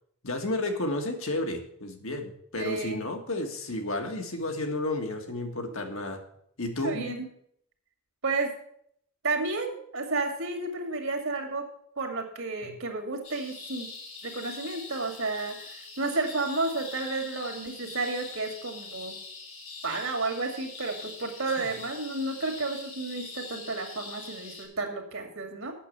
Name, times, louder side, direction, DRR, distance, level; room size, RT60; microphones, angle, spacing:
voice 1, 0.2-6.2 6.6-7.2 12.6-12.7 21.6-21.7, left 1 dB, 60° left, 4 dB, 1.7 m, -32 dB
voice 2, 2.6-3.0 5.7-5.8 6.8-7.3 8.2-8.5 9.2-11.6 12.0-13.9 14.2-19.2 19.8-25.7, right 3 dB, 65° right, 4 dB, 2.1 m, -32 dB
sound 1, 13.2-24.6, left 4 dB, 80° left, 4.7 m, -43 dB
8.5 x 6.7 x 8.1 m, 0.70 s
head